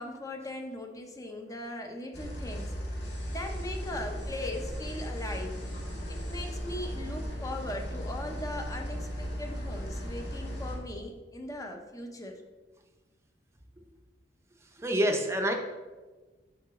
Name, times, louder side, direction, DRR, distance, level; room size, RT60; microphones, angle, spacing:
voice 1, 0.0-2.7 3.3-5.6 6.1-12.4, left 1 dB, 20° left, 3 dB, 0.7 m, -39 dB
sound 1, 2.1-10.8, equal, 75° left, 1.4 m, -36 dB
voice 2, 14.8-15.5, equal, 15° right, 3 dB, 0.7 m, -26 dB
6.1 x 6.0 x 3.6 m, 1.3 s
head